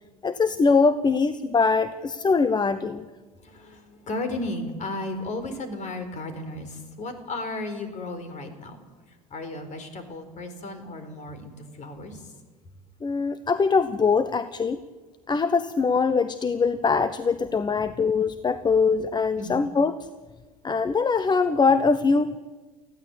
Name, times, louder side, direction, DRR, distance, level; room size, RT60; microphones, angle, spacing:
voice 1, 0.2-3.1 13.0-14.8 15.3-20.1 20.6-22.4, left 4 dB, 25° left, 13 dB, 1.0 m, -22 dB
voice 2, 3.4-8.8 9.1-12.3 19.4-19.6, left 2 dB, 40° left, 9 dB, 4.4 m, -34 dB
20.0 x 15.5 x 8.4 m, 1.4 s
hypercardioid pair, 75°, 18 cm